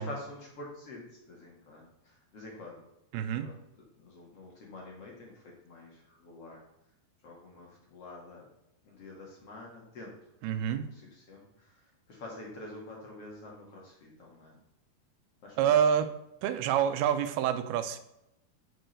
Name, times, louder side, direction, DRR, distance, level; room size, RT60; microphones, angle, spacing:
voice 1, 0.0-2.8 3.3-3.5 4.0-6.6 7.2-8.5 8.8-10.2 10.8-14.6 15.4-15.9, left 2 dB, 45° left, -1 dB, 2.6 m, -47 dB
voice 2, 3.1-3.5 10.4-10.9 15.6-16.1 16.4-18.0, right 9 dB, 85° right, 10 dB, 2.6 m, -27 dB
7.7 x 6.2 x 6.6 m, 0.87 s
omnidirectional pair, 4.4 m